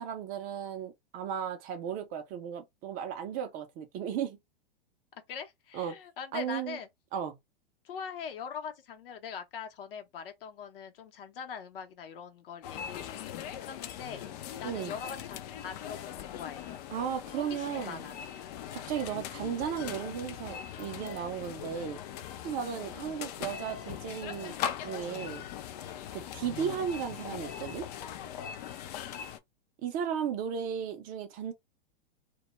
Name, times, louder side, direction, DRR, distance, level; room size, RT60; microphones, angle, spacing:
voice 1, 0.0-4.4 5.7-6.0 6.3-6.8 7.1-7.4 14.6-14.9 16.9-18.1 18.7-22.0 22.4-24.5 24.8-25.4 26.1-27.9 29.8-31.5, right 8 dB, 30° right, 0.5 m, -35 dB
voice 2, 5.3-6.9 7.8-14.2 14.6-16.7 17.5-18.2 18.5-18.7 26.1-26.4 28.9-29.3, left 7 dB, 65° left, 0.8 m, -42 dB
sound 1, 12.6-29.4, left 9 dB, 40° left, 0.4 m, -40 dB
2.2 x 2.0 x 2.9 m
hypercardioid pair, 115°, 30 cm